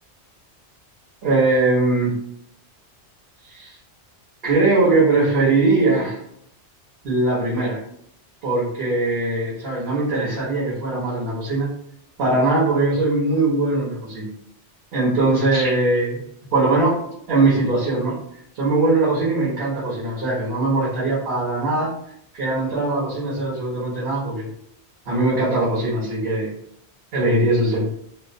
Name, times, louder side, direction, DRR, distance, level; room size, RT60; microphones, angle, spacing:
voice 1, 1.2-2.1 3.5-3.7 4.4-6.2 7.0-7.8 8.4-11.7 12.2-14.3 14.9-16.2 16.5-17.0 17.3-18.2 18.5-21.9 22.3-24.5 25.1-26.5 27.1-27.9, right 2 dB, 60° right, -8 dB, 1.0 m, -20 dB
2.5 x 2.0 x 2.5 m, 0.71 s
omnidirectional pair, 1.2 m